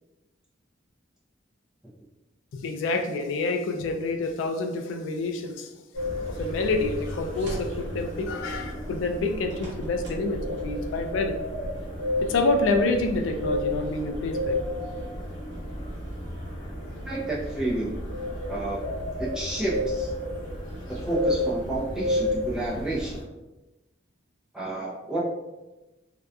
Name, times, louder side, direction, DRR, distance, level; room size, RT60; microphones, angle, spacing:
voice 1, 2.5-5.7 6.3-11.4 12.2-14.5, left 3 dB, 85° left, 5 dB, 0.3 m, -27 dB
sound 1, 5.9-23.2, left 1 dB, 40° left, 0.8 m, -32 dB
sound 2, 6.3-6.4 6.9-7.8 9.1-10.3 10.5-10.7, equal, 65° right, 0.8 m, -42 dB
voice 2, 17.0-18.0 18.5-18.8 19.2-20.1 20.9-23.2 24.5-25.2, right 2 dB, 5° right, -7 dB, 0.5 m, -30 dB
2.6 x 2.2 x 2.3 m, 1.0 s
head